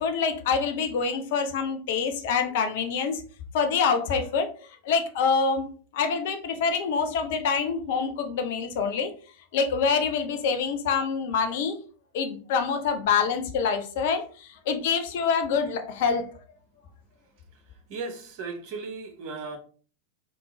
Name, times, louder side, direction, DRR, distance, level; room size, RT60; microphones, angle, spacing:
voice 1, 0.0-3.2 3.5-4.5 4.8-5.7 5.9-9.1 9.5-11.8 12.1-16.3, left 5 dB, 50° left, 0.5 m, -26 dB
voice 2, 17.9-19.6, right 4 dB, 45° right, 0.8 m, -36 dB
3.6 x 2.3 x 2.9 m
figure-of-eight pair, 90°, 0 cm